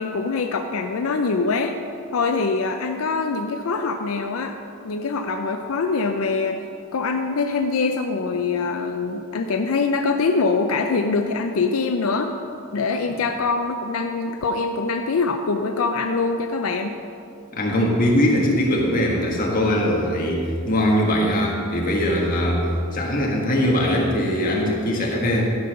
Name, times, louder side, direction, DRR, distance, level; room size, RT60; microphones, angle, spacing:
voice 1, 0.0-1.7 2.1-4.6 4.8-6.6 6.9-12.3 12.7-17.0, left 4 dB, 85° left, 6 dB, 0.5 m, -23 dB
voice 2, 17.5-25.4, equal, 40° left, -2 dB, 1.6 m, -21 dB
12.5 x 5.4 x 5.6 m, 2.5 s
head